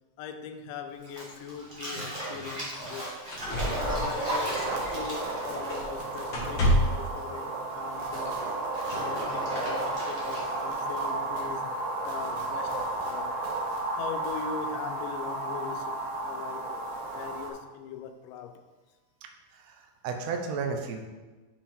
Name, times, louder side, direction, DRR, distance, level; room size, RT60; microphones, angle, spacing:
voice 1, 0.2-3.1 3.7-8.4 8.9-11.7 12.1-13.4 14.0-18.7, left 7 dB, 85° left, 2.1 m, -41 dB
Bathtub (filling or washing), 1.0-6.9 7.1-10.7, right 1 dB, 25° right, 1.1 m, -37 dB
sound 1, 2.8-2.9 3.3-5.3 5.7-6.0 6.3-7.1 8.2-8.3, equal, 40° left, 2.3 m, -29 dB
sound 2, 3.7-17.5, right 2 dB, 85° right, 2.9 m, -33 dB
voice 2, 19.6-21.1, right 5 dB, 70° right, 1.8 m, -33 dB
7.2 x 5.6 x 4.3 m
omnidirectional pair, 3.8 m